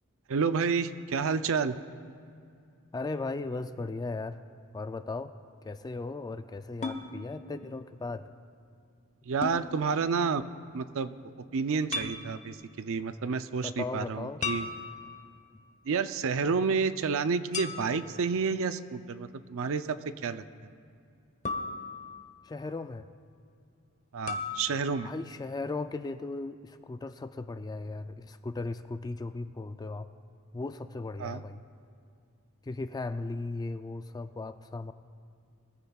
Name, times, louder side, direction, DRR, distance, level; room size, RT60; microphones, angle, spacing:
voice 1, 0.3-1.8 9.3-10.4 10.7-11.1 11.5-14.7 15.8-20.0 20.2-20.7 24.1-25.1 31.2-31.4, right 5 dB, 65° right, 12 dB, 0.5 m, -30 dB
voice 2, 2.9-4.4 4.7-5.3 5.6-8.3 13.6-14.4 22.4-23.1 25.0-30.1 30.5-31.6 32.6-34.9, left 3 dB, 20° left, 10 dB, 0.3 m, -37 dB
sound 1, 6.8-7.1 9.4-9.6 11.9-12.2 14.4-15.3 17.5-18.2 21.5-22.4 24.3-24.6, left 4 dB, 35° left, 1.0 m, -35 dB
22.5 x 14.5 x 2.3 m, 2.4 s
head